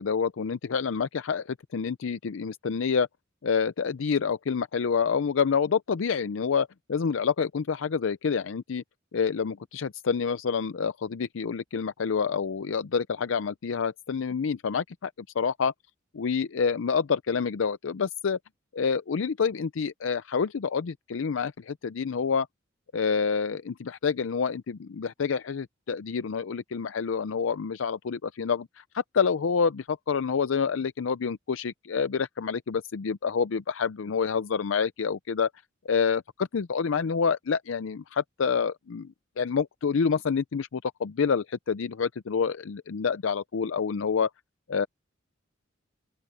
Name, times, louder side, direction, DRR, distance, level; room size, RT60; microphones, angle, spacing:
voice 1, 0.0-3.1 3.4-8.8 9.1-15.1 15.4-15.7 16.1-18.4 18.7-22.5 22.9-35.5 35.8-44.3 44.7-44.9, left 6 dB, 75° left, 0.5 m, -28 dB
open air
head